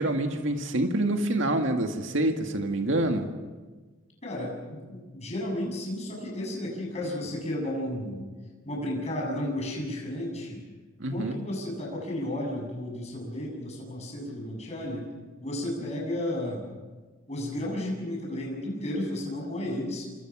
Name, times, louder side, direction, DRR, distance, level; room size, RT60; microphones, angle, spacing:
voice 1, 0.0-3.3 11.0-11.4, right 1 dB, 70° right, 5 dB, 1.9 m, -26 dB
voice 2, 4.2-8.3 8.6-10.6 11.1-15.1 15.4-16.7 17.3-20.1, left 1 dB, 30° left, -1 dB, 7.3 m, -33 dB
27.0 x 26.0 x 6.1 m, 1.3 s
head